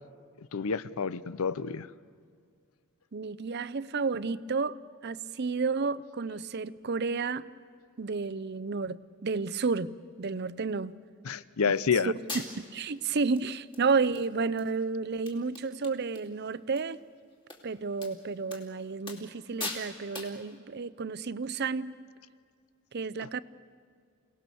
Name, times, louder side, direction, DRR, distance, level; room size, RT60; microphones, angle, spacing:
voice 1, 0.5-1.9 11.2-12.1 23.2-23.3, left 6 dB, 75° left, 18 dB, 0.6 m, -29 dB
voice 2, 3.1-7.5 8.0-9.9 10.2-11.0 12.6-17.0 17.6-22.0 22.9-23.4, right 4 dB, 50° right, 15 dB, 0.6 m, -31 dB
sound 1, 11.7-11.8 12.3-12.8 13.4-13.5 13.7-14.3 14.6-14.7 15.0-15.1 15.3-16.3 16.5-16.8 17.5-17.6 18.0-18.1 18.5-18.7 19.1-19.3 19.6-19.9 20.1-20.4, left 2 dB, 25° left, 2.6 m, -40 dB
28.5 x 18.5 x 6.9 m, 2.1 s
head